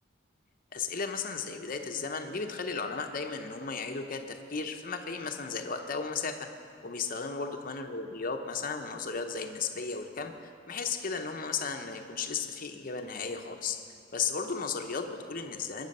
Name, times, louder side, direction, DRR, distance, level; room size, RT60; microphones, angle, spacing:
voice 1, 0.7-6.5 6.8-13.8 14.1-15.9, left 5 dB, 45° left, 5 dB, 0.8 m, -35 dB
20.5 x 6.9 x 5.4 m, 2.3 s
head